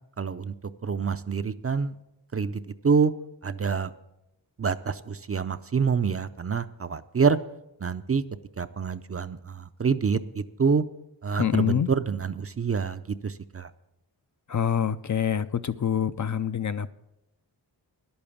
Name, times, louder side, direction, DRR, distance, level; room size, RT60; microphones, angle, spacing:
voice 1, 0.2-0.5 0.8-1.9 2.3-3.1 3.4-3.9 4.6-7.4 7.8-8.2 8.6-10.8 11.2-13.7, right 5 dB, 35° right, 11 dB, 0.5 m, -26 dB
voice 2, 11.4-11.9 14.5-16.9, left 9 dB, 45° left, 12 dB, 0.5 m, -26 dB
10.5 x 8.7 x 7.2 m, 0.89 s
wide cardioid pair, 65°, 44 cm